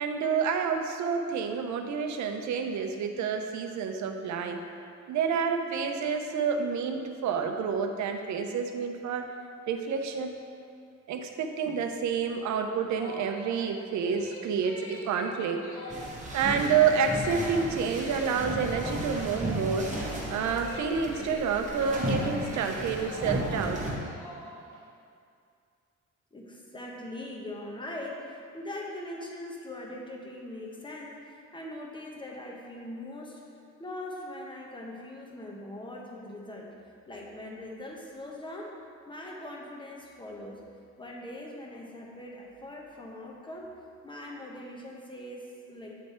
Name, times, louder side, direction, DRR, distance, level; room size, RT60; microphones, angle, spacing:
voice 1, 0.0-4.6 5.1-9.3 9.7-10.3 11.1-19.9 20.3-23.8, right 6 dB, 70° right, 5 dB, 0.7 m, -29 dB
sound 1, 12.8-24.9, left 2 dB, 80° left, 1.2 m, -44 dB
sound 2, 15.9-23.9, right 1 dB, 25° right, 1.4 m, -34 dB
voice 2, 26.3-33.4 33.8-36.7 37.1-38.7 39.1-40.6 41.0-43.7 44.0-45.9, left 1 dB, 15° left, -2 dB, 1.0 m, -41 dB
8.6 x 3.2 x 4.3 m, 2.4 s
cardioid pair, 90°, 30 cm